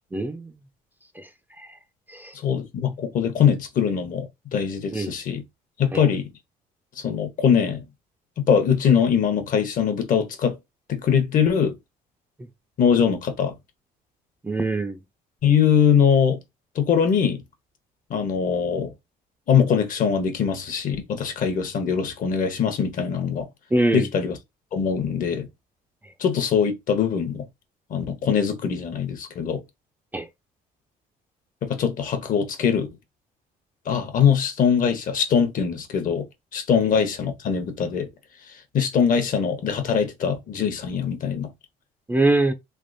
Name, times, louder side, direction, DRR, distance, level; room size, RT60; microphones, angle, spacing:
voice 1, 0.1-0.5 1.6-1.7 2.1-2.3 4.9-5.1 5.9-6.0 14.4-15.0 23.7-24.1 30.1-30.3 42.1-42.5, right 2 dB, 10° right, 0.4 m, -23 dB
voice 2, 2.4-5.4 5.8-6.3 7.0-7.8 8.4-10.6 10.9-11.7 12.8-13.5 15.4-16.4 16.8-17.4 18.1-18.9 19.5-23.5 23.9-24.4 24.7-25.5 26.2-27.5 27.9-29.6 31.6-32.9 33.9-36.3 36.5-38.1 38.7-41.5, left 7 dB, 55° left, 0.9 m, -22 dB
3.4 x 2.8 x 2.6 m
cardioid pair, 110°, 17 cm